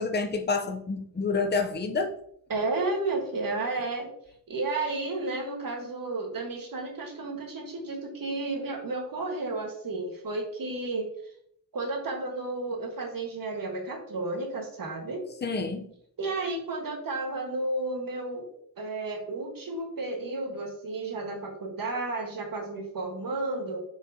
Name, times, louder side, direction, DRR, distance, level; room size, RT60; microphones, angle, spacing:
voice 1, 0.0-2.1 15.4-15.9, left 4 dB, 30° left, 5 dB, 0.6 m, -28 dB
voice 2, 2.5-4.1 4.5-11.1 11.7-15.2 16.2-18.5 18.8-23.8, right 2 dB, 70° right, 2 dB, 1.5 m, -32 dB
8.0 x 4.7 x 2.8 m, 0.69 s
wide cardioid pair, 155°, 35 cm